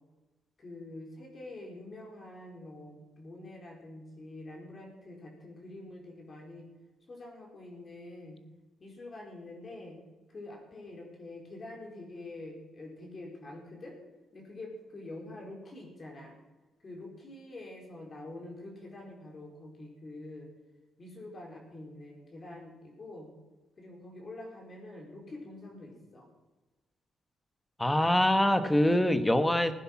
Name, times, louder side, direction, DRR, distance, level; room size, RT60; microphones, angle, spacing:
voice 1, 0.6-6.6 7.1-8.4 8.8-10.0 10.3-14.0 14.3-16.3 16.8-20.5 21.0-23.3 23.8-26.3, left 2 dB, 40° left, 0 dB, 4.8 m, -46 dB
voice 2, 27.8-29.7, left 1 dB, 10° left, 10 dB, 1.4 m, -24 dB
16.0 x 10.0 x 6.1 m, 1.2 s
cardioid pair, 90°, 0 cm